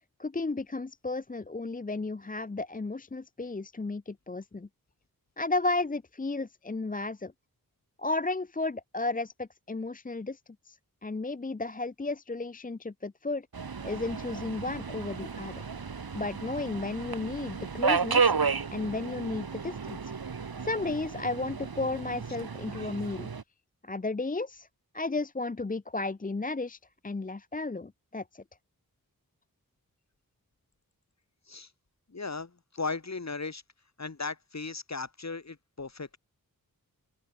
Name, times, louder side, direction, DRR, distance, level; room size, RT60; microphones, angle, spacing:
voice 1, 0.2-4.7 5.4-7.3 8.0-10.4 10.7-13.5 13.8-15.5 16.1-18.3 18.7-20.1 20.6-23.3 23.8-24.7 24.9-26.8 27.0-28.4, left 3 dB, 25° left, 0.7 m, -33 dB
Subway metro underground, 13.5-23.4, right 5 dB, 75° right, 3.5 m, -32 dB
voice 2, 32.1-33.6 34.0-36.2, left 4 dB, 45° left, 3.6 m, -37 dB
open air
wide cardioid pair, 95°, 36 cm